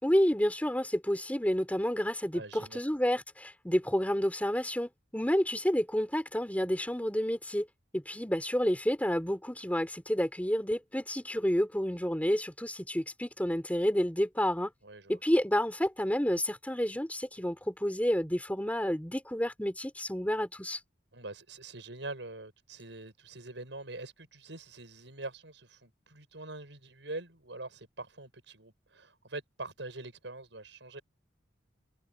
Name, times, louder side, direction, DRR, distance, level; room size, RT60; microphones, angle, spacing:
voice 1, 0.0-7.7 7.9-14.7 15.1-20.8, equal, 10° left, 3.7 m, -30 dB
voice 2, 2.3-2.8 14.8-15.2 21.1-31.0, right 2 dB, 80° right, 6.4 m, -44 dB
head